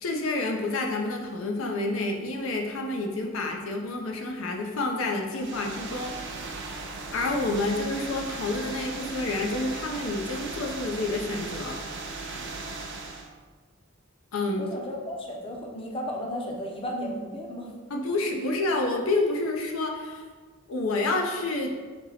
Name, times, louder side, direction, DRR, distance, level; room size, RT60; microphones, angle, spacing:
voice 1, 0.0-6.1 7.1-11.8 14.3-14.6 17.9-20.2 20.7-21.7, left 2 dB, 85° left, 2 dB, 0.6 m, -29 dB
sound 1, 5.3-13.3, right 3 dB, 60° right, 0.6 m, -37 dB
voice 2, 14.6-17.8, equal, 25° left, -1 dB, 0.6 m, -34 dB
4.5 x 2.8 x 4.0 m, 1.4 s
head